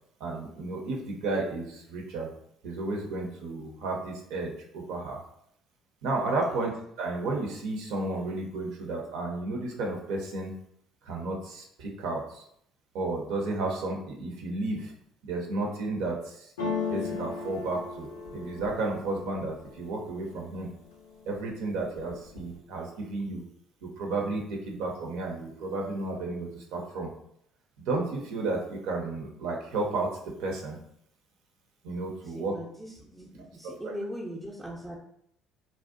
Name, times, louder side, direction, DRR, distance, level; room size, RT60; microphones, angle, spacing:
voice 1, 0.2-2.3 2.6-5.2 6.0-6.7 7.0-10.5 11.0-12.5 12.9-14.9 15.2-20.7 21.3-23.4 23.8-27.1 27.9-30.1 30.4-30.8 31.8-32.6 33.8-33.9, right 2 dB, 70° right, 0 dB, 0.5 m, -32 dB
sound 1, 16.6-20.4 20.9-21.5 21.8-22.6, left 5 dB, 85° left, 0.5 m, -36 dB
voice 2, 32.3-35.0, equal, ahead, -5 dB, 0.5 m, -40 dB
2.5 x 2.0 x 2.4 m, 0.70 s
hypercardioid pair, 60°, 0 cm